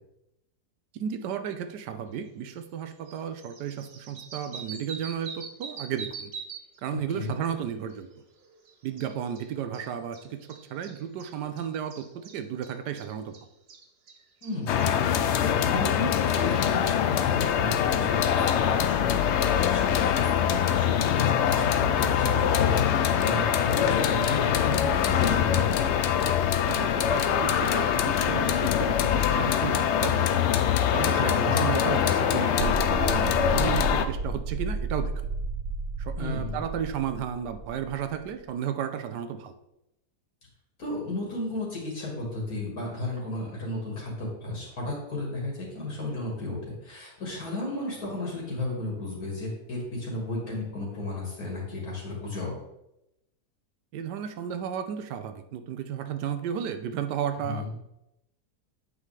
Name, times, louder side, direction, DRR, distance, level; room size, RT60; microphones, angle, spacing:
voice 1, 0.9-6.3 6.8-8.1 8.8-13.3 26.7-30.5 30.9-35.1 36.0-39.5 53.9-57.8, right 8 dB, 90° right, 9 dB, 1.3 m, -33 dB
sound 1, 2.5-2.6 2.9-6.8 7.1-15.3 17.1-17.2 17.4-18.9 19.7-19.8 21.6-21.7, right 5 dB, 50° right, 0.8 m, -45 dB
voice 2, 6.9-7.4 14.4-14.8 15.1-25.9 31.1-31.7 36.2-36.6 40.8-52.5 57.5-57.7, left 2 dB, 65° left, -3 dB, 2.2 m, -34 dB
sound 2, 14.7-34.1, left 9 dB, 90° left, 0.6 m, -24 dB
sound 3, 32.6-38.4, right 3 dB, 75° right, 1.0 m, -32 dB
8.3 x 5.5 x 3.2 m, 0.87 s
omnidirectional pair, 1.7 m